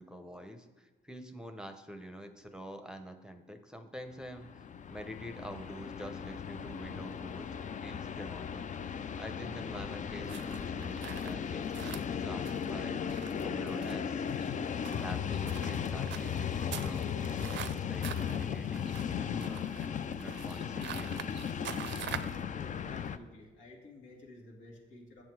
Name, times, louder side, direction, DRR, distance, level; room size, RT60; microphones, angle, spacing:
voice 1, 0.0-4.6 4.9-13.0 13.4-14.2 15.0-21.5, equal, 5° right, 7 dB, 0.7 m, -47 dB
Train, 4.2-23.2, left 7 dB, 40° left, 0.4 m, -36 dB
sound 1, 10.3-22.4, right 10 dB, 65° right, 0.5 m, -46 dB
voice 2, 22.5-25.2, left 2 dB, 85° left, -1 dB, 2.0 m, -52 dB
7.8 x 7.3 x 4.7 m, 1.2 s
cardioid pair, 90°, 20 cm